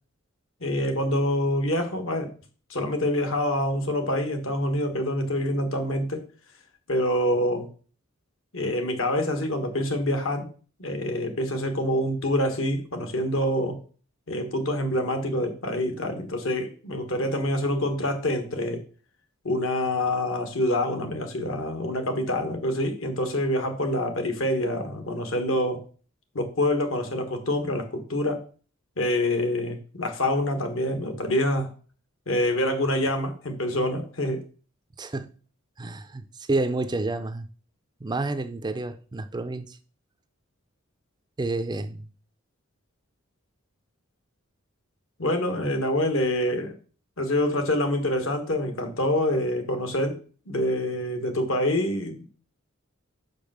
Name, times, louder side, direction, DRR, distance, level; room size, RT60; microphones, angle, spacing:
voice 1, 0.6-2.3 2.7-6.2 6.9-7.7 8.5-10.5 10.8-13.8 14.3-18.8 19.4-25.8 26.3-28.4 29.0-31.7 32.3-34.4 45.2-46.7 47.2-50.2 50.5-52.3, left 1 dB, 70° left, 1.6 m, -26 dB
voice 2, 35.0-35.3 35.8-37.5 38.0-39.8 41.4-42.1 45.6-45.7, right 2 dB, 20° right, 0.4 m, -29 dB
5.5 x 5.2 x 6.4 m
head